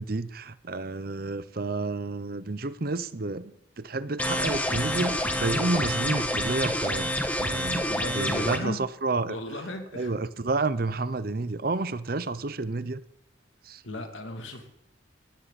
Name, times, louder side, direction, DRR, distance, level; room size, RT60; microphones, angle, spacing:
voice 1, 0.0-7.1 7.4-9.4 10.0-13.0 13.6-13.8, right 3 dB, 50° right, 0.8 m, -30 dB
sound 1, 4.2-8.6, left 1 dB, 10° left, 1.5 m, -28 dB
voice 2, 7.9-8.9 9.3-10.2 13.8-14.7, left 1 dB, 80° left, 2.8 m, -36 dB
19.5 x 16.0 x 4.2 m
head